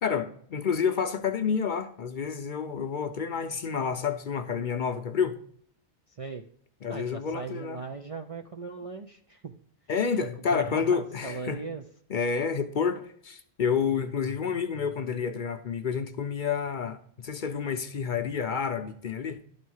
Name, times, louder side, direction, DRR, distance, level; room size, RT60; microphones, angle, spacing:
voice 1, 0.0-5.4 6.8-7.8 9.9-11.6 12.1-19.4, left 6 dB, 55° left, 0.7 m, -29 dB
voice 2, 6.1-6.4 6.9-9.5 10.5-11.8, right 4 dB, 45° right, 0.5 m, -38 dB
11.5 x 4.1 x 6.3 m
omnidirectional pair, 1.1 m